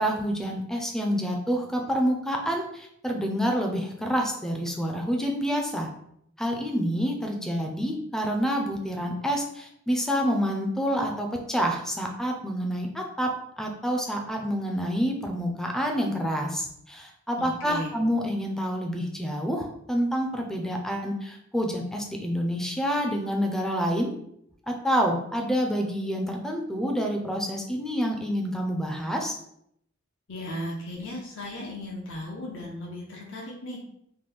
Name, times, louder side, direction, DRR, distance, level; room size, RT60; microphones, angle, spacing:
voice 1, 0.0-5.9 6.4-24.1 24.7-29.4, equal, ahead, 2 dB, 0.4 m, -28 dB
voice 2, 17.4-17.9 30.3-33.8, left 1 dB, 70° left, -3 dB, 0.7 m, -36 dB
3.0 x 2.2 x 3.3 m, 0.73 s
head